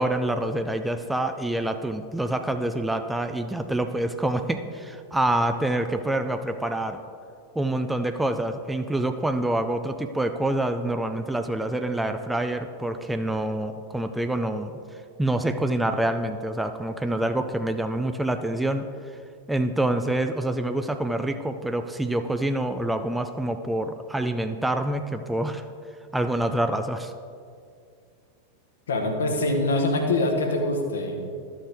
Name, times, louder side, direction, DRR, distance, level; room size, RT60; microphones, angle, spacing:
voice 1, 0.0-7.0 7.6-14.7 15.2-18.9 19.5-25.6 26.1-27.1, right 1 dB, 5° right, 7 dB, 0.4 m, -26 dB
voice 2, 28.9-31.5, left 2 dB, 65° left, 3 dB, 1.3 m, -24 dB
12.5 x 7.1 x 3.4 m, 2.3 s
figure-of-eight pair, 90°, 0 cm